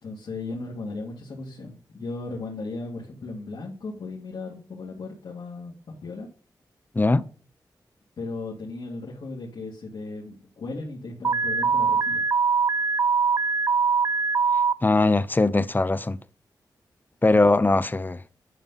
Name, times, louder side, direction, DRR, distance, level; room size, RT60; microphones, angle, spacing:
voice 1, 0.0-5.7 6.0-6.3 8.2-12.2, left 3 dB, 85° left, 2.2 m, -36 dB
voice 2, 6.9-7.2 14.8-16.2 17.2-18.2, left 2 dB, 25° left, 0.7 m, -20 dB
Alarm, 11.2-14.7, right 5 dB, 45° right, 0.4 m, -22 dB
11.0 x 5.6 x 4.0 m
cardioid pair, 65°, 8 cm